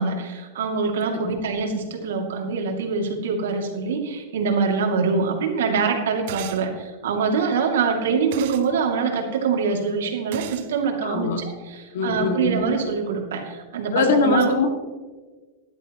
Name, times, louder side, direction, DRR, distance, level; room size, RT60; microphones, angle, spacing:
voice 1, 0.0-14.5, right 5 dB, 90° right, 2 dB, 2.6 m, -24 dB
sound 1, 6.3-6.6 8.3-8.7 10.3-10.7, right 11 dB, 55° right, 0.8 m, -35 dB
voice 2, 11.0-11.4 11.9-12.6 13.9-14.7, left 4 dB, 70° left, 4 dB, 2.2 m, -22 dB
16.0 x 12.0 x 3.1 m, 1.3 s
supercardioid pair, 165°, 0 cm